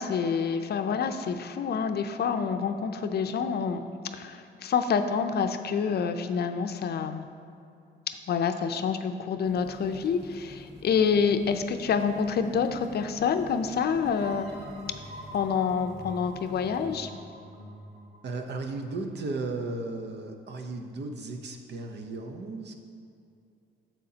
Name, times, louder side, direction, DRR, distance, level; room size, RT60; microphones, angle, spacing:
voice 1, 0.0-3.8 4.1-7.3 8.3-14.5 15.3-17.1, left 6 dB, 55° left, 8 dB, 0.5 m, -27 dB
sound 1, 9.4-17.0, left 1 dB, 5° left, 1.7 m, -48 dB
sound 2, 14.0-19.5, right 1 dB, 30° right, 1.8 m, -46 dB
voice 2, 18.2-22.7, right 3 dB, 60° right, 4 dB, 0.9 m, -35 dB
9.5 x 7.3 x 2.8 m, 2.6 s
cardioid pair, 90°, 20 cm